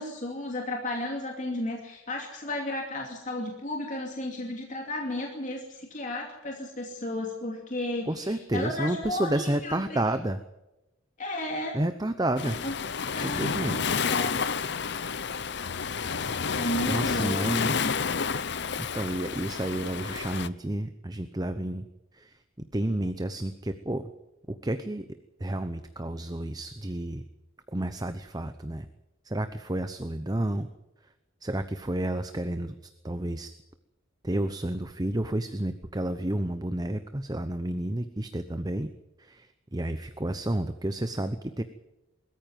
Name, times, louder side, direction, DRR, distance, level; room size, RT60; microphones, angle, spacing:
voice 1, 0.0-10.0 11.2-11.8 12.6-12.7 13.1-14.4 16.5-17.9, left 1 dB, 40° left, 1 dB, 2.6 m, -34 dB
voice 2, 8.1-10.4 11.7-12.6 13.2-13.8 16.9-17.8 18.8-21.8 22.1-22.4 22.7-24.1 24.5-25.1 25.4-27.2 27.7-28.9 29.2-30.7 31.4-32.7 33.0-33.5 34.2-38.9 39.2-41.6, right 1 dB, 20° right, 10 dB, 0.8 m, -30 dB
Waves surf, 12.4-20.5, left 5 dB, 55° left, 0.8 m, -30 dB
21.5 x 14.0 x 9.3 m, 0.94 s
head